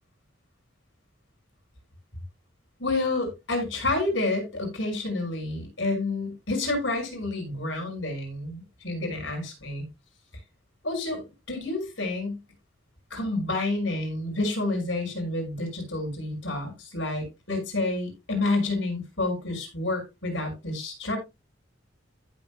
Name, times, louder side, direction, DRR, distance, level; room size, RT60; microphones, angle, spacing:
voice 1, 2.8-9.9 10.8-12.4 13.1-21.2, left 2 dB, 65° left, 6.1 m, -29 dB
14.5 x 7.4 x 2.3 m
head